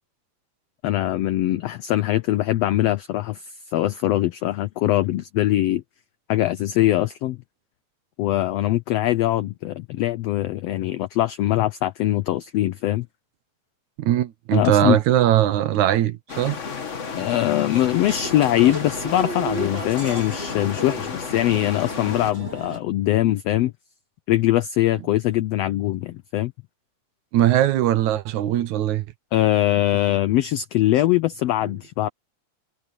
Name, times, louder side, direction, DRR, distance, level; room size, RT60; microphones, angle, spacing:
voice 1, 0.8-5.8 6.3-7.4 8.2-13.1 14.5-15.0 17.2-23.7 24.3-26.5 29.3-32.1, left 14 dB, 90° left, 1.4 m, -22 dB
voice 2, 14.0-16.6 27.3-29.1 31.6-31.7, right 12 dB, 70° right, 2.3 m, -20 dB
sound 1, 16.3-22.3, left 5 dB, 70° left, 0.7 m, -32 dB
sound 2, 17.7-22.8, right 2 dB, 35° right, 6.6 m, -34 dB
omnidirectional pair, 3.6 m